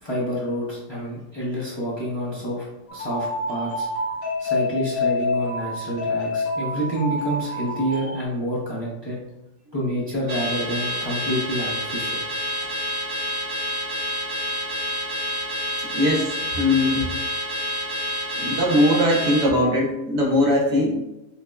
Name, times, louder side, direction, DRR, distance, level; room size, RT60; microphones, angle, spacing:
voice 1, 0.0-3.9 4.4-9.2 9.7-12.2, equal, 40° left, -7 dB, 0.3 m, -28 dB
sound 1, 2.9-8.2, left 2 dB, 80° left, 1.5 m, -27 dB
Car / Alarm, 10.3-19.5, left 1 dB, 50° right, 1.0 m, -28 dB
voice 2, 15.9-17.1 18.4-21.0, left 1 dB, 70° right, -2 dB, 1.4 m, -20 dB
5.6 x 2.0 x 2.3 m, 0.94 s
omnidirectional pair, 1.7 m